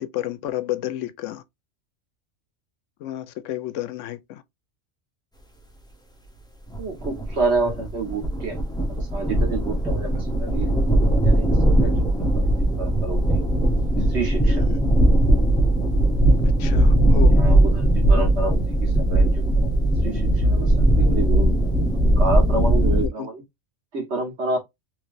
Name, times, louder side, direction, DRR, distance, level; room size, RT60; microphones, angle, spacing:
voice 1, 0.0-1.4 3.0-4.4 14.5-14.8 16.6-17.3 23.0-23.3, left 12 dB, 80° left, 0.9 m, -31 dB
sound 1, 6.7-23.1, right 1 dB, 5° left, 0.4 m, -19 dB
voice 2, 6.8-8.6 8.9-13.5 14.0-14.6 17.2-23.4 23.9-24.6, right 3 dB, 65° right, 1.7 m, -29 dB
3.1 x 3.1 x 2.5 m
omnidirectional pair, 1.3 m